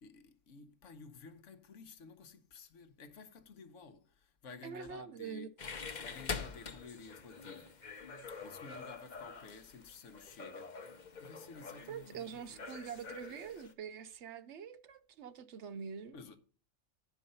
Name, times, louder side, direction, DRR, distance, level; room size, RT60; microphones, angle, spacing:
voice 1, 0.0-5.5 6.0-7.7 8.0-10.9 11.2-12.6 16.1-16.4, left 4 dB, 70° left, 1.2 m, -53 dB
voice 2, 4.6-5.5 11.9-16.2, right 7 dB, 65° right, 0.8 m, -45 dB
sound 1, 5.6-13.7, left 5 dB, 40° left, 0.9 m, -46 dB
11.0 x 4.6 x 5.4 m
omnidirectional pair, 1.4 m